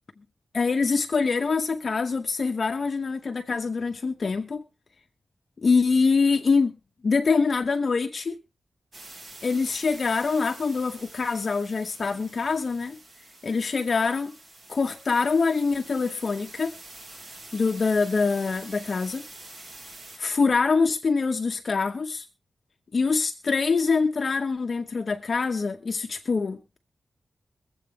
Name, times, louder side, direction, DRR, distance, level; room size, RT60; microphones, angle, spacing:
voice 1, 0.5-4.6 5.6-6.7 7.0-8.3 9.4-13.0 13.4-14.3 14.7-16.7 17.5-19.2 20.2-22.3 22.9-26.8, left 4 dB, 45° left, 0.8 m, -24 dB
sound 1, 8.9-20.2, right 2 dB, 55° right, 2.7 m, -46 dB
22.5 x 7.9 x 3.6 m
wide cardioid pair, 175°, 0 cm